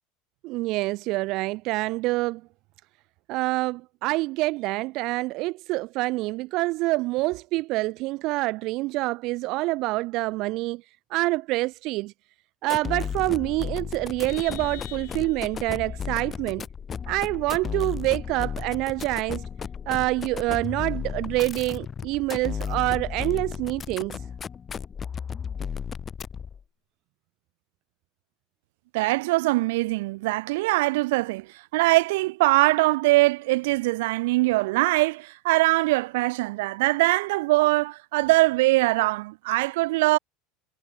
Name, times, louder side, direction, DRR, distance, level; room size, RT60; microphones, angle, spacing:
voice 1, 0.4-2.4 3.3-10.8 11.1-12.1 12.6-16.6 17.1-19.4 19.9-24.2, right 21 dB, 40° right, 0.4 m, -26 dB
sound 1, 12.6-26.6, left 7 dB, 15° left, 0.6 m, -34 dB
Vehicle horn car horn honking, 14.3-15.7, left 20 dB, 80° left, 1.6 m, -44 dB
voice 2, 28.9-31.5 31.7-40.2, right 21 dB, 75° right, 0.7 m, -22 dB
cardioid pair, 180°, 0 cm